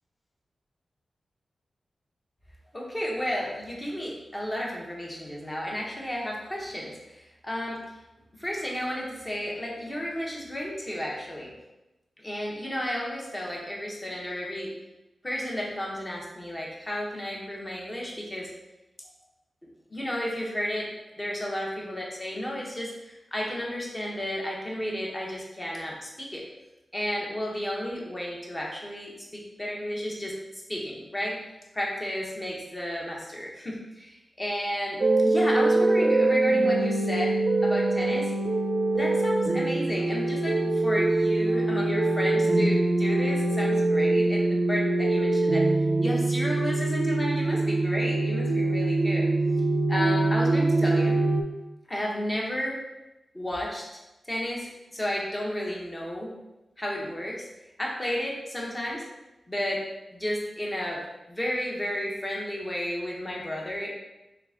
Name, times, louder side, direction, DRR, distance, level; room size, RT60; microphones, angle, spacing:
voice 1, 2.7-7.8 8.4-11.5 12.2-14.7 15.2-18.5 19.9-20.9 21.2-26.4 26.9-30.4 30.7-31.4 31.7-38.3 38.9-45.6 46.0-49.3 49.9-51.2 51.9-52.8 53.3-53.9 54.2-56.3 56.8-57.4 57.8-59.0 59.5-59.8 60.1-61.0 61.3-63.9, equal, 20° left, -3 dB, 1.0 m, -32 dB
sound 1, 35.0-51.4, right 2 dB, 60° right, 0.4 m, -24 dB
3.4 x 2.9 x 3.7 m, 0.98 s
cardioid pair, 75°, 0 cm